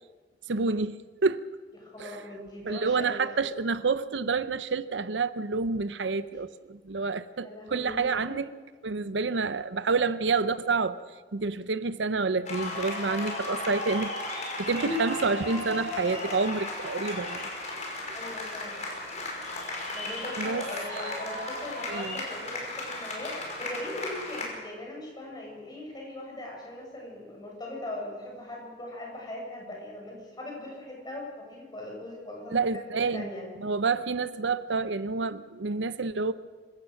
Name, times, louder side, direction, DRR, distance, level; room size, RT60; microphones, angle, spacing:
voice 1, 0.5-1.4 2.0-2.1 2.7-8.5 8.8-11.0 11.3-14.1 14.6-17.5 20.4-20.7 21.9-22.2 32.5-33.3 33.6-36.3, right 4 dB, 85° right, 0.7 m, -28 dB
voice 2, 1.8-3.2 7.4-8.4 18.1-18.8 19.9-32.7 33.1-33.5, left 1 dB, 25° left, 6.9 m, -40 dB
sound 1, 12.5-24.5, left 2 dB, 40° left, 5.5 m, -35 dB
sound 2, 14.8-18.2, left 3 dB, 85° left, 5.9 m, -39 dB
26.0 x 16.0 x 6.5 m
head